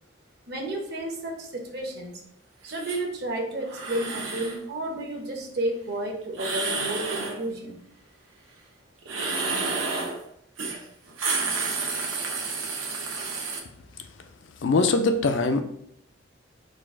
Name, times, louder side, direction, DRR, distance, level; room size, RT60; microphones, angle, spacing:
voice 1, 0.5-2.2 2.6-7.8, right 1 dB, 55° right, 1 dB, 0.9 m, -32 dB
sound 1, 2.7-3.0 3.7-4.6 6.3-7.4 9.0-10.2 10.6-10.8 11.1-13.6, right 4 dB, 85° right, 0.9 m, -30 dB
voice 2, 14.6-15.6, left 3 dB, 70° left, 7 dB, 0.4 m, -22 dB
4.0 x 2.4 x 4.6 m, 0.75 s
head